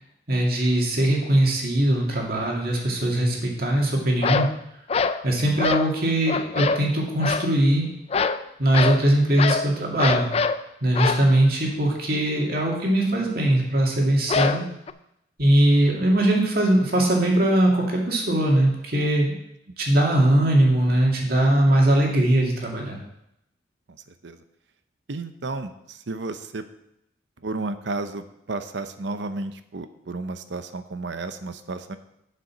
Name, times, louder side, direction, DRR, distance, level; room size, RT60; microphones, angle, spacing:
voice 1, 0.3-4.5 5.2-7.9 8.6-10.3 10.8-14.6 15.4-19.3 19.8-23.0, right 1 dB, 50° right, -1 dB, 2.2 m, -21 dB
sound 1, 4.2-4.6 4.9-5.2 5.6-5.9 6.3-6.9 7.2-7.5 8.1-8.4 8.7-9.0 9.4-9.7 10.0-10.6 11.0-11.3 14.3-14.9, left 5 dB, 30° left, 0.3 m, -24 dB
voice 2, 23.9-24.4 25.1-26.6 27.4-32.0, right 3 dB, 65° right, 10 dB, 0.7 m, -32 dB
7.6 x 6.7 x 6.1 m, 0.81 s
head